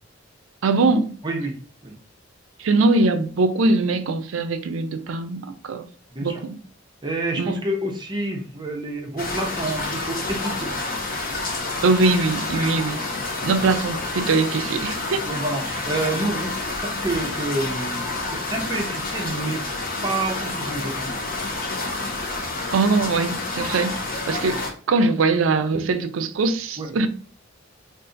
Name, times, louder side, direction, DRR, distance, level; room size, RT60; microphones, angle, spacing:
voice 1, 0.6-1.1 2.6-5.9 6.2-6.6 7.4-7.6 11.8-13.0 13.4-15.2 22.7-23.9 24.3-24.6 24.9-27.1, right 3 dB, 85° right, 0.4 m, -21 dB
voice 2, 1.2-1.9 6.1-6.4 7.0-10.7 13.4-13.6 15.2-19.6 20.0-21.1 24.5-24.6 25.6-26.0 26.8-26.9, right 2 dB, 25° right, 0.6 m, -29 dB
sound 1, 9.2-24.7, left 2 dB, 50° left, 0.6 m, -29 dB
2.5 x 2.5 x 3.7 m
head